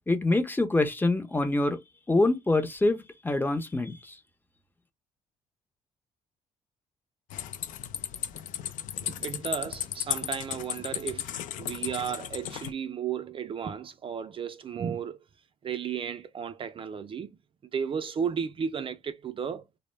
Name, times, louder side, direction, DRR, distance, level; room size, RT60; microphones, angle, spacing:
voice 1, 0.1-1.8 2.1-4.2, left 2 dB, 15° left, 0.5 m, -25 dB
sound 1, 7.3-12.7, left 11 dB, 75° left, 0.4 m, -35 dB
voice 2, 9.0-15.2 15.6-17.3 17.7-19.6, right 7 dB, 40° right, 0.4 m, -34 dB
2.1 x 2.0 x 3.1 m
supercardioid pair, 60°, 14 cm